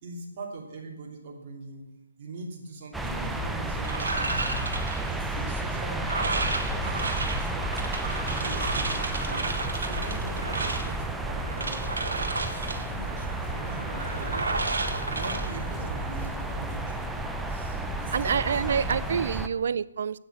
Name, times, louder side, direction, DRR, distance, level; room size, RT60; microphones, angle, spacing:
voice 1, 0.0-1.8 2.2-4.7 5.1-7.8 8.4-9.5 9.8-11.9 12.4-14.6 15.1-17.1 17.5-19.0, right 3 dB, 35° right, -1 dB, 2.8 m, -42 dB
sound 1, 2.9-19.5, right 2 dB, 5° right, 0.6 m, -32 dB
sound 2, 3.8-16.1, right 3 dB, 70° right, 1.7 m, -33 dB
sound 3, 12.3-19.3, left 3 dB, 45° left, 2.4 m, -49 dB
voice 2, 18.1-20.2, right 7 dB, 55° right, 20 dB, 0.4 m, -27 dB
8.7 x 7.7 x 7.3 m, 0.96 s
figure-of-eight pair, 145°, 0 cm